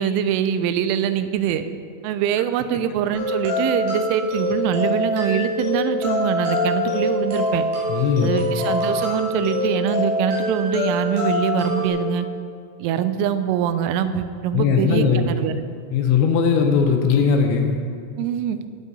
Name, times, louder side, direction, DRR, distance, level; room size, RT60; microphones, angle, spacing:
voice 1, 0.0-1.7 2.0-7.6 8.2-12.3 12.8-15.5 18.2-18.6, right 9 dB, 90° right, 11 dB, 3.1 m, -23 dB
sound 1, 3.1-11.9, left 1 dB, 70° right, 5.3 m, -24 dB
voice 2, 7.9-8.4 14.5-15.3 15.9-17.8, left 6 dB, 80° left, 3 dB, 3.0 m, -19 dB
18.0 x 6.4 x 4.1 m, 2.3 s
omnidirectional pair, 5.5 m